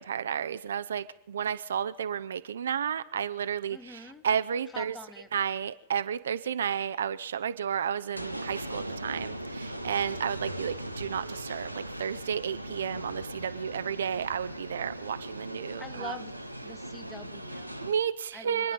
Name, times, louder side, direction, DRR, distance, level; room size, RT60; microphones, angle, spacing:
voice 1, 0.0-4.9 5.3-16.1 17.8-18.7, right 8 dB, 65° right, 0.6 m, -32 dB
voice 2, 3.7-4.2 4.7-5.3 15.8-16.4 16.6-17.8 18.3-18.7, left 2 dB, 10° left, 1.4 m, -44 dB
sound 1, 8.1-17.9, right 1 dB, 90° right, 1.2 m, -39 dB
26.0 x 9.9 x 5.5 m
figure-of-eight pair, 95°, 0 cm